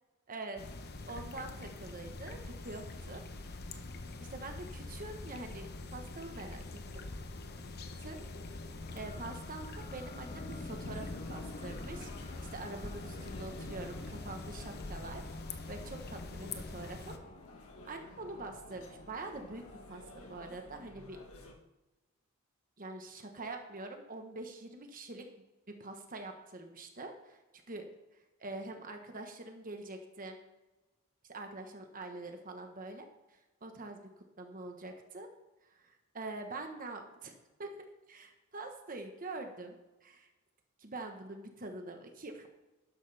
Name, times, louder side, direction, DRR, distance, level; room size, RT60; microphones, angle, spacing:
voice 1, 0.3-3.5 4.2-7.0 8.0-8.2 8.9-15.2 15.7-17.2 17.8-20.0 20.3-21.6 22.8-25.2 25.7-27.4 27.7-27.8 28.1-30.4 31.3-35.3 35.6-40.3 40.8-42.5, right 2 dB, 40° right, 4 dB, 1.2 m, -45 dB
sound 1, 0.6-17.2, left 2 dB, 50° left, 0.9 m, -44 dB
sound 2, 8.8-20.8, left 3 dB, 30° left, 0.5 m, -50 dB
sound 3, 10.9-21.5, left 1 dB, 85° left, 1.4 m, -53 dB
12.5 x 11.0 x 3.4 m, 1.1 s
head